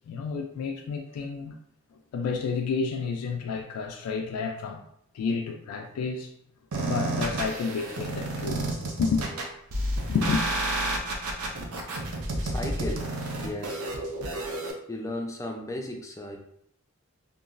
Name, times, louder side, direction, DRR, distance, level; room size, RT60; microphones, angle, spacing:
voice 1, 0.1-1.6 2.1-4.8 5.1-6.3 6.8-8.7 9.0-9.3 10.1-10.4, left 5 dB, 90° left, 0.3 m, -30 dB
sound 1, 6.7-14.7, right 2 dB, 85° right, 0.5 m, -30 dB
voice 2, 12.3-13.0 13.4-13.8 14.9-16.4, left 1 dB, 15° left, 0.4 m, -35 dB
2.9 x 2.3 x 2.4 m
head